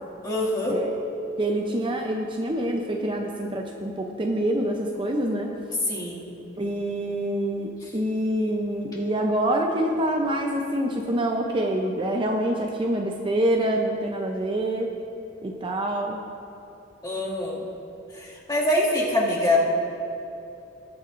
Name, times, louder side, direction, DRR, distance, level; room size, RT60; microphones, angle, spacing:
voice 1, 0.2-0.8 5.9-6.3 17.0-17.6 18.2-19.6, left 1 dB, 20° left, -6 dB, 2.2 m, -24 dB
voice 2, 1.4-5.5 6.6-14.9 15.4-16.2, right 1 dB, 25° right, 1 dB, 0.6 m, -26 dB
20.0 x 9.6 x 2.6 m, 2.9 s
head